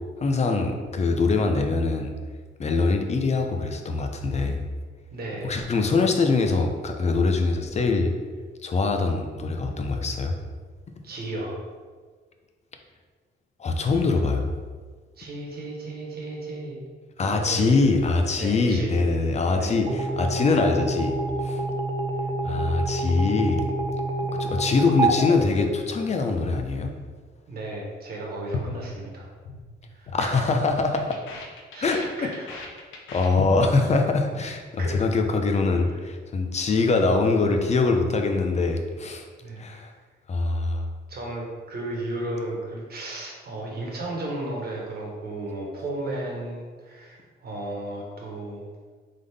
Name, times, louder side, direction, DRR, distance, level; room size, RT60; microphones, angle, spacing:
voice 1, 0.2-2.1 2.6-4.6 5.4-8.1 8.6-10.4 13.6-14.5 17.2-21.2 21.4-21.6 22.4-23.6 24.4-26.9 30.1-31.1 31.8-32.0 33.1-39.3 39.6-39.9 40.3-40.9, left 3 dB, 35° left, 5 dB, 0.6 m, -23 dB
voice 2, 5.1-5.6 11.0-11.6 15.2-16.8 17.2-17.7 18.3-19.0 19.5-19.8 27.5-29.3 29.9-30.5 30.8-31.0 31.7-32.7 34.8-35.0 39.4-39.6 41.1-48.7, right 2 dB, 50° right, -2 dB, 1.3 m, -34 dB
sound 1, 19.9-26.4, right 2 dB, 20° right, 0.4 m, -28 dB
sound 2, 28.5-29.6 29.9-30.2 30.5-33.9 34.1-34.5 34.7-35.1, left 4 dB, 85° left, 0.7 m, -37 dB
3.6 x 3.6 x 3.4 m, 1.5 s
cardioid pair, 90°, 20 cm